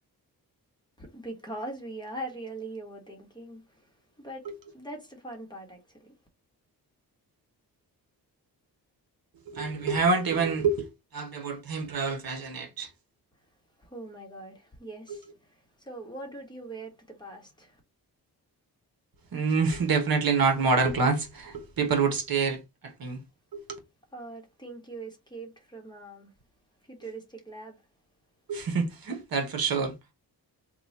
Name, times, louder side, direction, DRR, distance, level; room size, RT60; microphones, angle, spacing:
voice 1, 1.0-6.2 13.8-17.8 24.1-26.3 26.8-27.8, right 2 dB, 10° left, 1.0 m, -42 dB
voice 2, 9.5-10.9 11.1-12.9 15.1-15.2 19.3-23.2 23.5-23.8 28.5-29.9, right 4 dB, 60° right, 1.1 m, -27 dB
3.0 x 2.3 x 4.0 m
wide cardioid pair, 125°, 39 cm